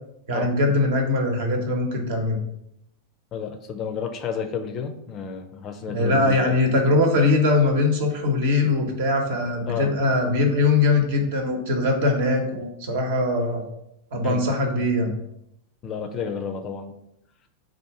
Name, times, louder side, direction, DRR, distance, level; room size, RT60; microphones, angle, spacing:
voice 1, 0.3-2.4 5.9-13.7 14.1-15.1, left 2 dB, 55° right, 3 dB, 0.9 m, -21 dB
voice 2, 3.3-6.6 9.7-9.9 14.2-14.4 15.8-16.9, left 6 dB, 30° left, 5 dB, 0.5 m, -31 dB
4.4 x 2.5 x 4.7 m, 0.80 s
figure-of-eight pair, 90°, 0 cm